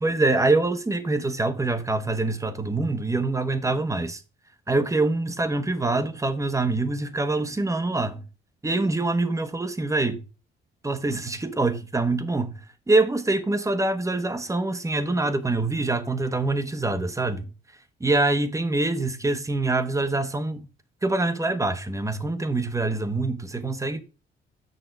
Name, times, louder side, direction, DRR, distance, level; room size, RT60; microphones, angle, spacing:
voice 1, 0.0-4.2 4.7-8.2 8.6-10.2 10.8-12.6 12.9-17.5 18.0-20.7 21.0-24.0, right 2 dB, 15° right, 1.1 m, -25 dB
6.6 x 6.5 x 4.5 m
cardioid pair, 90°, 20 cm